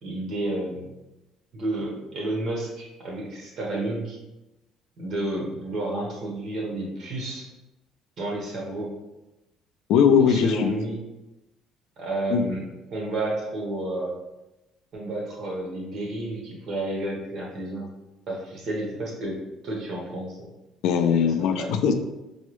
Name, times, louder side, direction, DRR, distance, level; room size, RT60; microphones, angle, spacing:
voice 1, 0.0-0.9 1.5-4.2 5.0-7.5 8.2-8.9 10.2-11.0 12.0-14.1 14.9-17.9 18.3-20.5 21.2-21.8, right 1 dB, 45° right, -2 dB, 1.1 m, -31 dB
voice 2, 9.9-10.7 12.3-12.5 20.8-21.9, left 7 dB, 75° left, 7 dB, 0.4 m, -20 dB
4.4 x 2.0 x 3.1 m, 0.98 s
cardioid pair, 140°, 0 cm